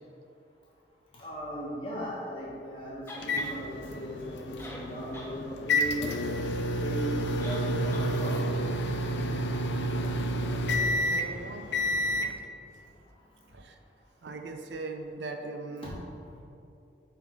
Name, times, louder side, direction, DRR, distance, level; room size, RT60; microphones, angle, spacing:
voice 1, 1.2-6.1 6.8-8.6 15.8-16.0, right 1 dB, 30° left, -5 dB, 1.3 m, -37 dB
sound 1, 3.1-3.5 4.3-4.4 4.6-5.3 5.7-5.8 7.4-7.7 7.9-8.1, left 1 dB, 15° left, 0.6 m, -44 dB
sound 2, 3.2-12.3, equal, 75° left, 0.5 m, -30 dB
voice 2, 10.6-11.7 13.5-13.8 14.2-16.0, right 3 dB, 75° right, 4 dB, 0.5 m, -40 dB
5.0 x 4.4 x 4.6 m, 2.7 s
head